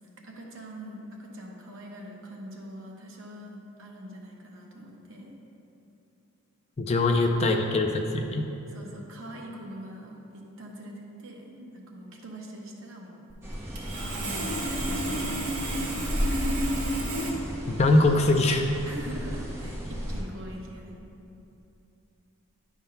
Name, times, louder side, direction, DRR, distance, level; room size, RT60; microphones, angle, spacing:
voice 1, 0.2-5.3 7.1-7.9 8.7-13.2 13.8-15.6 16.2-17.1 18.8-21.0, equal, 60° right, -1 dB, 1.0 m, -43 dB
voice 2, 6.8-8.4 17.7-18.7, left 2 dB, 30° left, 4 dB, 0.3 m, -22 dB
Sawing, 13.3-13.4 13.8-17.3, right 1 dB, 90° right, 1.5 m, -31 dB
sound 1, 13.4-20.2, equal, 10° right, 0.9 m, -34 dB
9.5 x 3.6 x 5.6 m, 2.9 s
head